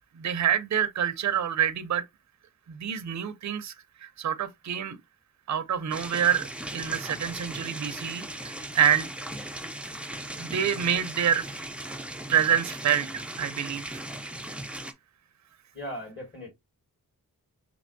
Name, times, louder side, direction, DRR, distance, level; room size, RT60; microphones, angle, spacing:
voice 1, 0.2-2.0 2.7-3.7 4.0-5.0 5.5-9.1 10.4-11.5 12.3-14.0, right 9 dB, 50° right, 0.6 m, -27 dB
sound 1, 5.9-14.9, right 1 dB, 5° right, 0.4 m, -38 dB
voice 2, 15.7-16.5, equal, 30° left, 2.2 m, -38 dB
5.2 x 2.9 x 2.6 m
wide cardioid pair, 105°, 35 cm